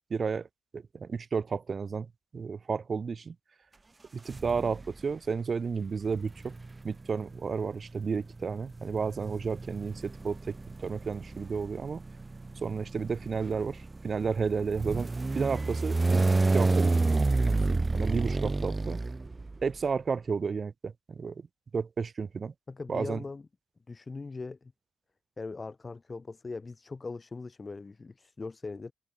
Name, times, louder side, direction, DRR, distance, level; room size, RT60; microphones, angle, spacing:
voice 1, 0.1-0.5 0.7-3.3 4.2-6.5 6.8-10.6 10.8-12.0 12.6-19.0 19.6-21.5 21.7-22.5 22.9-23.2, right 5 dB, 40° right, 1.4 m, -32 dB
sound 1, 4.3-5.0 6.1-19.8, right 3 dB, 20° right, 0.6 m, -30 dB
voice 2, 22.7-23.4 23.9-24.7 25.4-28.9, left 3 dB, 25° left, 0.6 m, -40 dB
cardioid pair, 90°, 0 cm